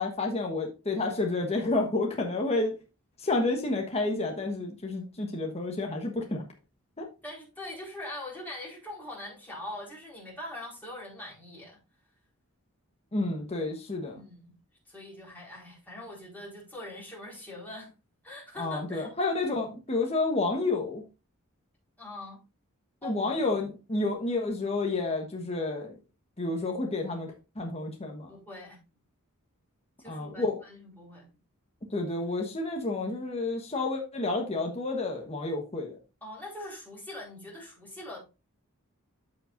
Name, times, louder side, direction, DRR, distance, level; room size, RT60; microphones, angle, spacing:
voice 1, 0.0-2.8 3.2-6.4 7.0-7.1 13.1-14.2 18.6-21.0 23.0-25.9 26.4-28.3 30.0-30.6 31.9-36.0, left 2 dB, 30° left, 1 dB, 1.2 m, -30 dB
voice 2, 7.2-11.8 14.1-14.5 14.9-17.9 18.2-19.1 22.0-22.4 23.0-23.3 28.3-28.8 30.0-31.3 36.2-38.2, left 1 dB, 10° left, -5 dB, 4.3 m, -42 dB
13.0 x 5.2 x 2.6 m, 0.29 s
head